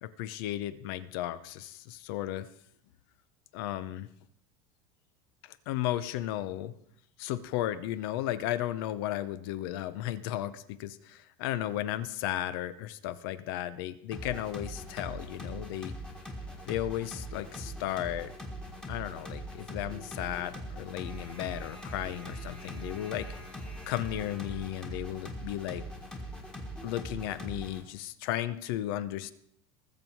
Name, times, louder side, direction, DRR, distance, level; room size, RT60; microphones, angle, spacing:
voice 1, 0.0-2.5 3.5-4.1 5.4-6.7 7.2-15.9 16.7-18.3 18.9-23.3 23.9-25.8 26.8-29.3, left 13 dB, 65° left, 15 dB, 0.8 m, -34 dB
sound 1, 14.1-27.8, equal, 5° left, 1.6 m, -41 dB
20.0 x 7.3 x 4.7 m, 0.71 s
cardioid pair, 170°, 13 cm